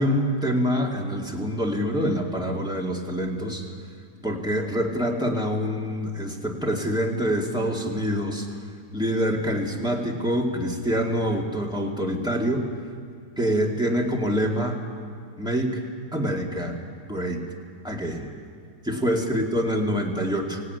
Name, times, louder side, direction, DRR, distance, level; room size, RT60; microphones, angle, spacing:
voice 1, 0.0-3.6 4.2-8.5 8.9-12.6 13.4-14.8 15.4-15.8 16.1-16.8 17.1-17.4 17.8-18.3 18.8-20.6, equal, 5° right, -1 dB, 2.4 m, -25 dB
24.5 x 17.0 x 9.5 m, 2.2 s
omnidirectional pair, 1.6 m